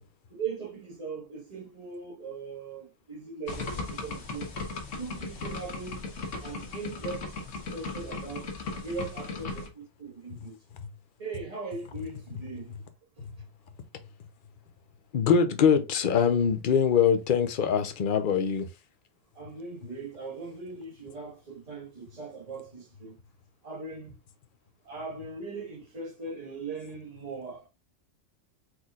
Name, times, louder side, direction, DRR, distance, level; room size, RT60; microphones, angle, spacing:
voice 1, 0.3-4.5 4.9-6.1 6.4-7.3 7.6-8.5 8.8-10.6 11.2-12.7 19.3-23.2 23.6-24.2 24.8-27.7, right 4 dB, 30° right, 1.6 m, -39 dB
sound 1, 3.5-9.7, left 3 dB, 75° left, 1.5 m, -37 dB
voice 2, 15.1-18.7, left 7 dB, 50° left, 0.8 m, -23 dB
4.5 x 4.1 x 2.4 m
omnidirectional pair, 1.3 m